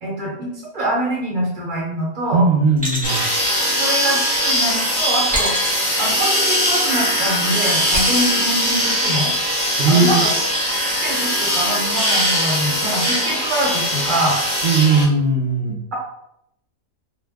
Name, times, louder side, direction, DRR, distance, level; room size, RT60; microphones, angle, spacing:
voice 1, 0.0-2.4 3.8-5.5 6.0-9.3 9.9-10.3 10.9-14.4 15.7-15.9, right 1 dB, 40° right, -4 dB, 0.8 m, -24 dB
voice 2, 2.3-3.3 9.8-10.2 14.6-15.8, right 3 dB, 85° right, -3 dB, 0.4 m, -17 dB
sound 1, 2.8-4.5 5.3-7.0 7.9-9.5, equal, 5° right, 0.8 m, -28 dB
sound 2, 3.0-15.0, equal, 25° left, 0.5 m, -20 dB
2.4 x 2.1 x 3.3 m, 0.79 s
omnidirectional pair, 1.5 m